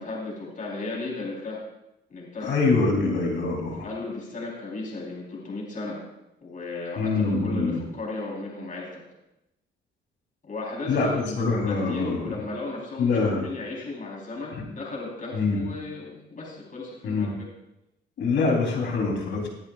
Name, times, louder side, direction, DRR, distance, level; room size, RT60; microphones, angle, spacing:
voice 1, 0.0-1.6 2.1-2.5 3.8-6.0 6.4-9.0 10.4-17.3, left 3 dB, 40° left, -3 dB, 4.0 m, -35 dB
voice 2, 2.4-3.9 7.0-7.8 10.9-11.1 11.4-12.4 13.0-13.5 14.5-14.6 15.3-15.6 17.0-17.3 18.2-19.5, left 3 dB, 70° left, 0 dB, 3.6 m, -24 dB
19.0 x 10.5 x 2.5 m, 0.87 s
cardioid pair, 90°, 20 cm